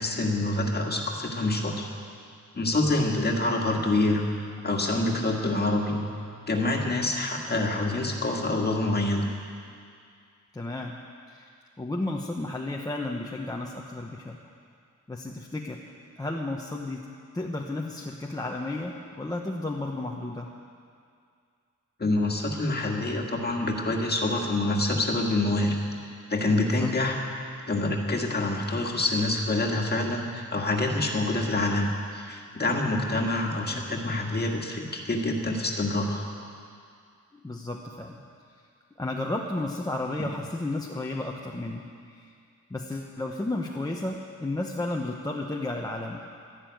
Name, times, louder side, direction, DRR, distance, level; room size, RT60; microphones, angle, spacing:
voice 1, 0.0-1.9 2.5-4.3 4.6-6.1 6.5-9.3 22.0-25.8 26.3-27.2 27.7-36.3, left 2 dB, 30° left, 1 dB, 1.8 m, -26 dB
voice 2, 4.9-5.3 6.7-7.0 10.5-11.0 11.3-11.5 11.8-14.4 15.1-15.8 16.2-17.0 17.3-20.5 26.8-26.9 33.7-33.9 37.3-38.2 39.0-41.9 42.1-42.3 42.7-46.2, left 2 dB, 10° left, -1 dB, 0.8 m, -33 dB
12.5 x 11.5 x 9.1 m, 2.3 s
wide cardioid pair, 165°, 31 cm